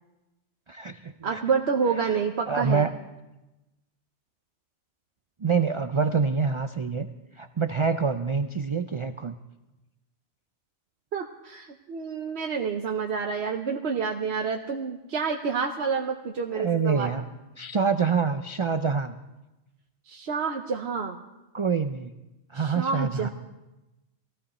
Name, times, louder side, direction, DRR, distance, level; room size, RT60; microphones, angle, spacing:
voice 1, 0.7-1.4 2.0-2.2 2.5-2.9 5.4-7.1 7.4-9.4 16.5-17.2 17.6-19.2 21.5-22.1 22.5-23.3, right 5 dB, 45° right, 8 dB, 0.4 m, -26 dB
voice 2, 1.2-2.9 11.1-17.1 20.1-21.2 22.5-23.3, right 5 dB, 65° right, 2 dB, 1.1 m, -28 dB
20.0 x 15.5 x 4.3 m, 1.0 s
omnidirectional pair, 1.2 m